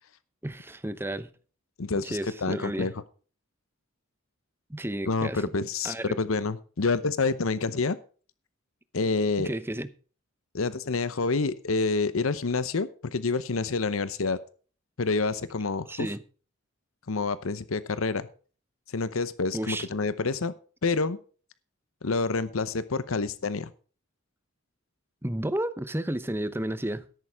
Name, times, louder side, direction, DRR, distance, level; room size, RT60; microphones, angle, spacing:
voice 1, 0.4-1.3 1.9-2.9 4.7-5.4 5.8-6.2 9.4-9.9 15.9-16.2 19.5-19.9 25.2-27.0, right 1 dB, 10° right, 0.8 m, -32 dB
voice 2, 1.8-2.9 5.1-8.0 8.9-9.5 10.5-14.4 15.0-16.1 17.1-18.3 18.9-20.5 20.8-21.2 22.0-23.7, left 3 dB, 85° left, 0.8 m, -28 dB
13.0 x 11.0 x 3.5 m
head